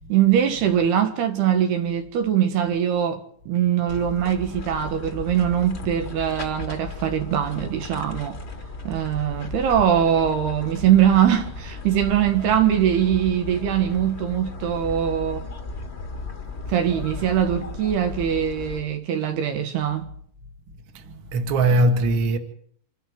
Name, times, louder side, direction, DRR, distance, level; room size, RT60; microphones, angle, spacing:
voice 1, 0.1-8.4 8.9-15.5 16.7-20.1, right 9 dB, 75° right, 3.6 m, -22 dB
sound 1, 3.9-18.8, left 3 dB, 40° left, 0.9 m, -36 dB
voice 2, 20.9-22.4, right 2 dB, 40° right, 2.2 m, -21 dB
26.5 x 11.5 x 9.5 m
omnidirectional pair, 4.7 m